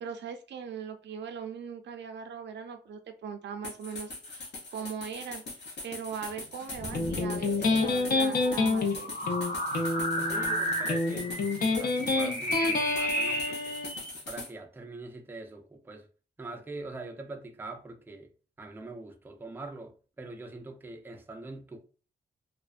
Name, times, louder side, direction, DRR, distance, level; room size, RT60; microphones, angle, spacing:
voice 1, 0.0-5.4 5.8-9.2, right 7 dB, 80° right, 0.4 m, -40 dB
sound 1, 3.6-14.5, left 3 dB, 75° left, 0.9 m, -42 dB
sound 2, 6.7-14.1, equal, 40° left, 1.1 m, -34 dB
Electric guitar, 6.9-13.9, left 3 dB, 55° left, 0.5 m, -28 dB
voice 2, 10.2-11.4 11.7-13.8 14.3-16.1 16.4-18.3 18.6-21.8, right 3 dB, 10° right, 0.3 m, -43 dB
2.4 x 2.1 x 2.4 m
wide cardioid pair, 115°, 18 cm